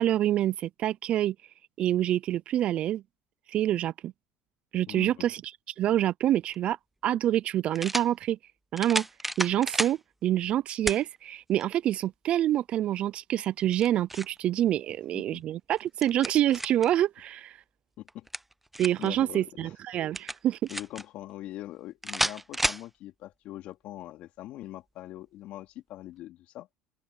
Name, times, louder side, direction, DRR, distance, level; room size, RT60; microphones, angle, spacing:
voice 1, 0.0-1.3 1.8-3.0 3.5-4.1 4.7-5.4 5.8-6.8 7.0-8.4 8.7-9.1 9.4-17.6 18.8-20.6, right 12 dB, 50° right, 0.5 m, -26 dB
voice 2, 4.9-5.3 15.1-15.4 18.0-18.3 19.0-19.7 20.7-26.8, left 15 dB, 60° left, 2.6 m, -42 dB
sound 1, 6.5-6.6 7.7-8.1 8.8-10.0 10.9-11.0 11.6-11.7 13.6-14.4 15.7-16.9 18.1-19.1 20.1-21.0 22.0-22.9, right 1 dB, 5° right, 0.6 m, -31 dB
open air
supercardioid pair, 95°, 2 cm